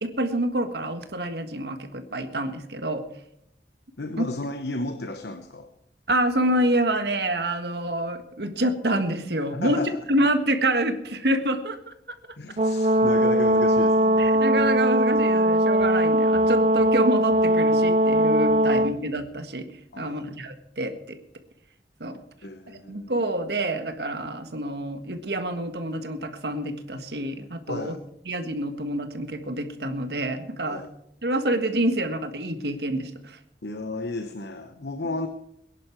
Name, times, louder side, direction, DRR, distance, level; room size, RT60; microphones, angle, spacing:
voice 1, 0.0-3.0 4.2-4.3 6.1-9.8 10.1-11.9 14.2-19.7 20.0-21.2 22.0-22.2 22.9-27.9 28.3-30.8 31.2-33.4, right 1 dB, 65° right, 8 dB, 1.6 m, -27 dB
voice 2, 4.0-5.7 9.5-10.0 12.4-14.5 18.6-18.8 19.9-20.2 22.4-23.1 27.7-28.0 30.7-30.9 33.6-35.3, left 2 dB, 70° left, 8 dB, 1.0 m, -33 dB
Brass instrument, 12.6-18.9, right 1 dB, 35° right, 0.6 m, -20 dB
21.0 x 11.0 x 4.5 m, 0.79 s
head